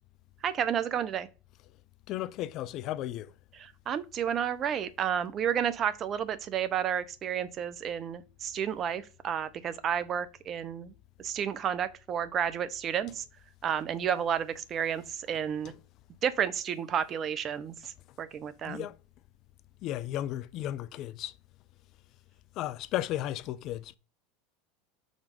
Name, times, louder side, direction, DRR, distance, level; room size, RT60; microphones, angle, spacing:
voice 1, 0.4-1.3 3.6-10.9 11.2-13.2 13.6-15.7 16.2-18.8, right 8 dB, 40° right, 0.7 m, -31 dB
voice 2, 2.1-3.3 15.6-15.7 18.6-19.0 19.8-21.3 22.6-24.0, left 13 dB, 55° left, 0.4 m, -34 dB
5.1 x 3.4 x 5.3 m
hypercardioid pair, 90°, 0 cm